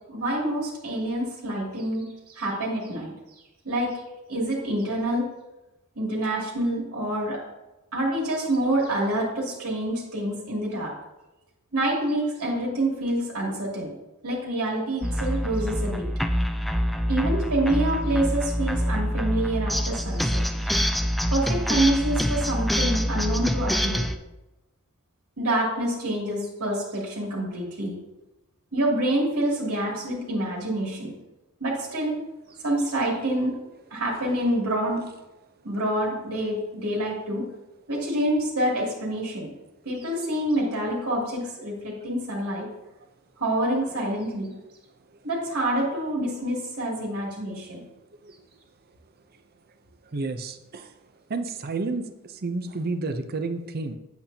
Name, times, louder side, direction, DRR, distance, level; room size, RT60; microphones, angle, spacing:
voice 1, 0.1-3.1 3.6-3.9 4.3-5.3 6.0-7.4 7.9-10.9 11.7-13.9 14.2-16.1 17.1-20.7 21.3-24.0 25.4-28.0 28.7-31.1 31.6-32.2 32.6-33.6 33.9-35.0 35.6-37.5 37.9-39.5 39.8-42.7 43.4-44.5 45.2-47.8, right 1 dB, 90° right, -3 dB, 2.6 m, -27 dB
sound 1, 15.0-24.2, equal, ahead, 0.4 m, -26 dB
voice 2, 50.1-50.9 51.3-54.0, right 3 dB, 45° right, 9 dB, 0.6 m, -31 dB
8.5 x 8.2 x 2.8 m, 0.99 s
head